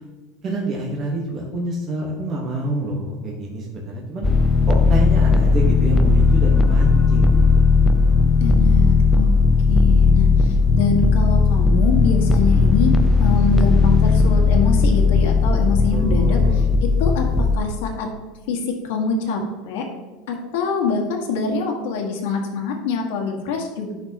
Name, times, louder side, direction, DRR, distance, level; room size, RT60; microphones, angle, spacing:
voice 1, 0.4-4.3 4.7-7.7 15.9-16.7, right 2 dB, 30° right, -3 dB, 1.2 m, -27 dB
sound 1, 4.2-17.6, left 4 dB, 15° left, 0.4 m, -16 dB
voice 2, 8.4-9.3 9.7-12.9 13.2-16.4 17.0-17.3 17.5-18.1 18.5-18.6 18.8-19.8 20.3-23.9, left 4 dB, 80° left, 2 dB, 1.6 m, -24 dB
10.5 x 5.9 x 2.9 m, 1.2 s
supercardioid pair, 150°, 0 cm